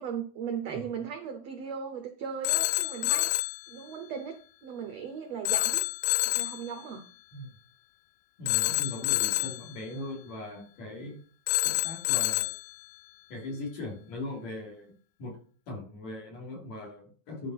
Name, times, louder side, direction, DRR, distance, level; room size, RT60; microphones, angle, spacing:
voice 1, 0.0-5.8 6.2-7.0, right 7 dB, 80° right, 6 dB, 1.4 m, -37 dB
Telephone, 2.4-3.6 5.4-6.6 8.5-9.6 11.5-12.6, left 19 dB, 85° left, 1.9 m, -27 dB
voice 2, 8.4-11.2 11.6-12.5 13.3-14.9 15.2-15.4 15.7-17.5, left 1 dB, 50° left, -1 dB, 4.1 m, -39 dB
11.0 x 5.6 x 5.6 m, 0.42 s
omnidirectional pair, 4.4 m